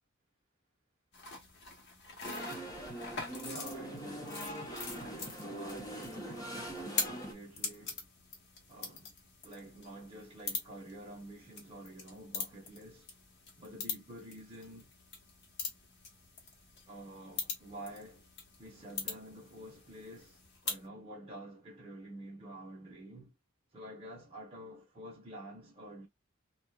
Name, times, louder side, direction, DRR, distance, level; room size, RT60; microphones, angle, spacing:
sound 1, 1.1-20.9, left 4 dB, 55° left, 1.0 m, -44 dB
sound 2, 2.2-7.3, right 1 dB, 15° left, 1.0 m, -42 dB
voice 1, 3.4-4.3 5.0-8.0 8.7-9.1 9.4-13.1 13.6-14.9 16.9-18.2 18.6-20.4 20.6-23.3 23.7-26.1, right 1 dB, 30° right, 0.9 m, -49 dB
2.8 x 2.4 x 2.2 m
head